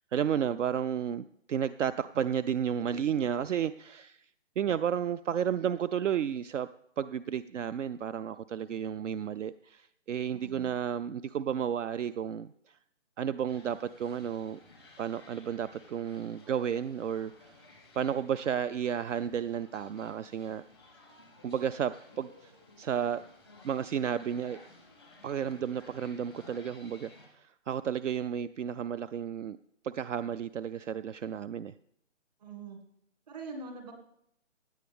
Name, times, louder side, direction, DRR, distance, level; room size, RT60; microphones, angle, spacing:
voice 1, 0.1-4.2 4.6-6.7 7.0-12.5 13.2-14.6 15.0-17.5 17.9-20.6 21.4-22.5 22.8-23.2 23.6-24.6 25.2-29.6 29.8-31.7, right 8 dB, 70° right, 14 dB, 0.5 m, -32 dB
voice 2, 10.3-10.8 32.4-32.8 33.3-33.9, right 3 dB, 30° right, 3 dB, 2.1 m, -43 dB
sound 1, 13.5-27.3, left 2 dB, 5° right, 0.7 m, -56 dB
16.5 x 9.4 x 3.5 m, 0.76 s
hypercardioid pair, 170°, 38 cm